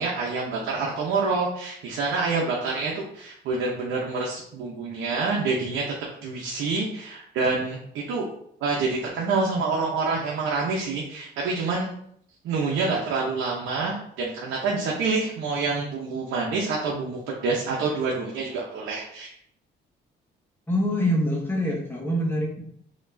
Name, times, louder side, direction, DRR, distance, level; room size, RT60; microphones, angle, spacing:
voice 1, 0.0-5.8 6.2-8.3 8.6-11.9 12.4-19.3, right 4 dB, 85° right, -3 dB, 0.9 m, -27 dB
voice 2, 20.7-22.6, equal, 10° left, -1 dB, 1.3 m, -25 dB
5.1 x 3.0 x 2.7 m, 0.68 s
cardioid pair, 90°, 20 cm